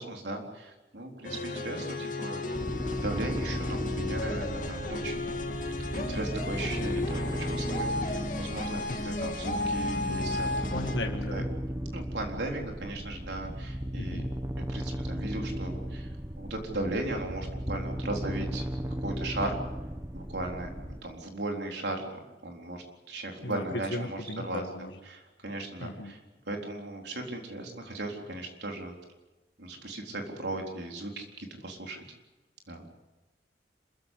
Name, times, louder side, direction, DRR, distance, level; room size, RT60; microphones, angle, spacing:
voice 1, 0.0-5.4 5.9-10.5 11.3-11.4 11.9-14.2 14.7-18.6 19.0-19.6 20.1-24.6 25.1-26.2 26.5-29.0 29.6-32.0 32.7-32.8, right 2 dB, 75° right, 2 dB, 3.9 m, -37 dB
sound 1, 1.2-11.0, left 2 dB, 45° left, 2.2 m, -34 dB
sound 2, 2.6-21.0, right 1 dB, 15° right, 1.2 m, -36 dB
voice 2, 10.7-11.5 14.0-14.3 23.4-25.0 25.8-26.2, left 2 dB, 85° left, 3 dB, 1.8 m, -36 dB
27.0 x 15.0 x 8.3 m, 1.1 s
head